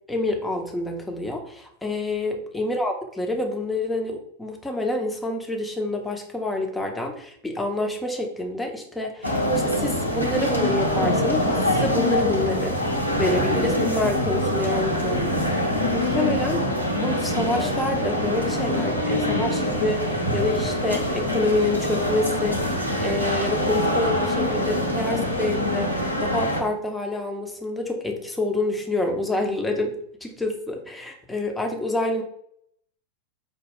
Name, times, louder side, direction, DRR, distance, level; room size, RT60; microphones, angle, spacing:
voice 1, 0.1-12.8 13.2-16.6 17.0-29.9 30.2-32.2, left 2 dB, 5° left, 2 dB, 0.7 m, -27 dB
sound 1, 9.2-26.6, left 1 dB, 90° right, 0.6 m, -24 dB
5.1 x 2.2 x 3.5 m, 0.67 s
figure-of-eight pair, 90°, 0 cm